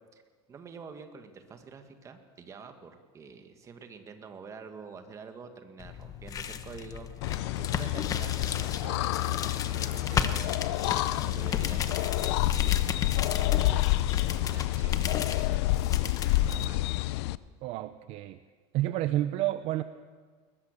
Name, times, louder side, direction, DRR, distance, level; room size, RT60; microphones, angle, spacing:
voice 1, 0.5-13.0 13.6-13.9 14.3-15.8 16.4-16.9, right 5 dB, 20° right, 6 dB, 1.9 m, -47 dB
sound 1, 5.8-16.7, left 7 dB, 25° left, 1.1 m, -35 dB
sound 2, 7.2-17.4, left 16 dB, 75° left, 0.6 m, -28 dB
voice 2, 17.6-18.4 18.7-19.8, right 14 dB, 45° right, 11 dB, 0.7 m, -30 dB
21.0 x 20.5 x 6.8 m, 1.5 s
supercardioid pair, 155°, 14 cm